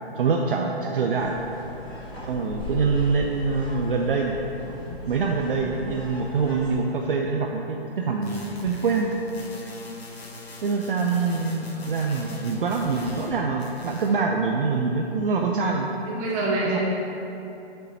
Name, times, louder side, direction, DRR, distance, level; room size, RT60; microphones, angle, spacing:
voice 1, 0.2-1.4 2.3-4.4 5.1-9.2 10.6-15.9 16.7-16.8, right 4 dB, 55° right, 1 dB, 0.7 m, -25 dB
sound 1, 1.2-6.7, left 2 dB, 5° left, 0.3 m, -37 dB
sound 2, 8.2-13.3 13.6-14.2, left 2 dB, 70° left, 1.5 m, -42 dB
voice 2, 16.1-16.8, right 2 dB, 20° right, -5 dB, 1.7 m, -26 dB
7.9 x 6.8 x 4.2 m, 2.9 s
hypercardioid pair, 140°, 32 cm